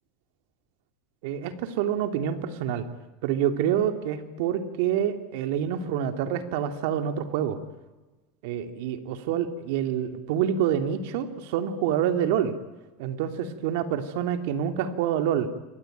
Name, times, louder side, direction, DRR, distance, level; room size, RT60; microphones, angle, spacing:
voice 1, 1.2-2.8 3.2-7.6 8.4-12.5 13.0-15.5, right 9 dB, 75° right, 8 dB, 2.9 m, -27 dB
28.0 x 22.5 x 9.3 m, 1.2 s
supercardioid pair, 120°, 0 cm